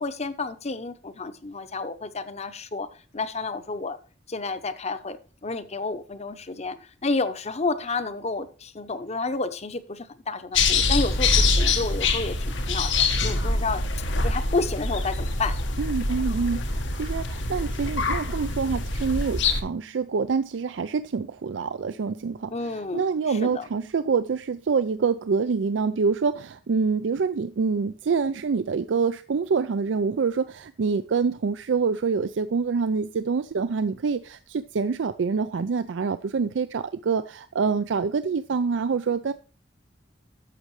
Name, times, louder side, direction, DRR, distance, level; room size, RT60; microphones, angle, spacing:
voice 1, 0.0-2.9 3.1-4.0 4.3-15.6 22.5-23.7, left 3 dB, 35° left, 0.8 m, -30 dB
sound 1, 10.5-19.6, left 3 dB, 90° left, 1.5 m, -25 dB
voice 2, 15.8-39.3, right 5 dB, 85° right, 0.4 m, -26 dB
11.5 x 7.3 x 3.2 m
head